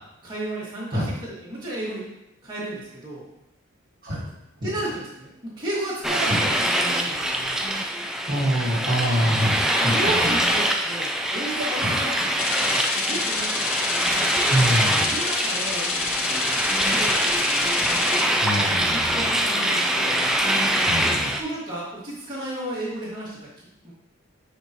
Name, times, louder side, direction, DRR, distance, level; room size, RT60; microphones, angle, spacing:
voice 1, 0.2-2.1 2.4-3.3 4.6-7.2 9.7-13.7 14.6-14.8 15.1-15.9 16.2-16.5 16.9-17.7 18.8-20.2 21.4-23.4 23.8-23.9, right 1 dB, 20° right, -9 dB, 2.1 m, -33 dB
sound 1, 6.0-21.4, right 1 dB, 5° right, 0.3 m, -24 dB
voice 2, 8.3-10.1 11.8-11.9 14.5-15.1 18.4-19.3 20.8-21.3, equal, 40° right, -7 dB, 1.6 m, -25 dB
sound 2, 12.4-18.2, left 5 dB, 80° left, 0.8 m, -29 dB
9.9 x 4.0 x 3.0 m, 0.86 s
head